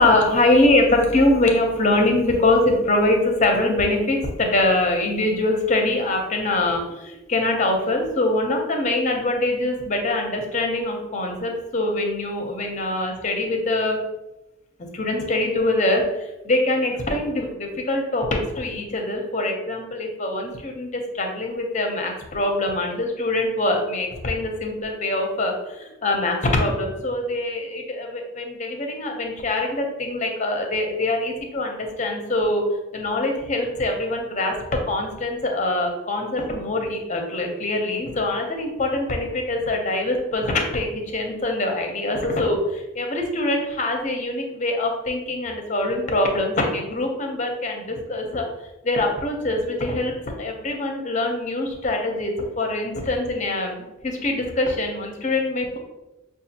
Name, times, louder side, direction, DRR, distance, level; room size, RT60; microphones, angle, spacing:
voice 1, 0.0-14.0 14.9-32.6 32.9-34.6 34.9-48.4 48.8-55.8, left 2 dB, 35° left, 2 dB, 0.6 m, -23 dB
6.0 x 2.4 x 2.8 m, 1.0 s
head